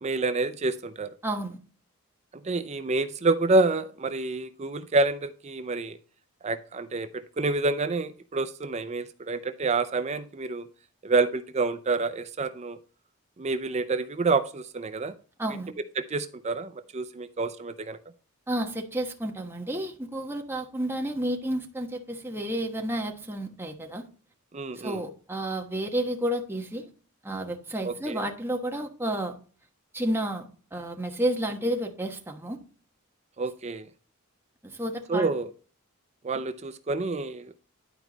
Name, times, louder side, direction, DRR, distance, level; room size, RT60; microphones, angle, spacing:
voice 1, 0.0-1.1 2.3-6.0 6.4-10.7 11.0-12.8 13.4-15.1 16.0-18.0 24.5-25.0 27.8-28.2 33.4-33.9 35.1-35.5 36.2-37.5, right 3 dB, 30° right, 0.5 m, -28 dB
voice 2, 1.2-1.6 15.4-15.7 18.5-24.1 24.7-26.9 27.2-29.3 29.9-30.5 30.7-32.6 34.6-35.3, right 1 dB, 10° right, 1.2 m, -31 dB
11.0 x 4.6 x 3.9 m
head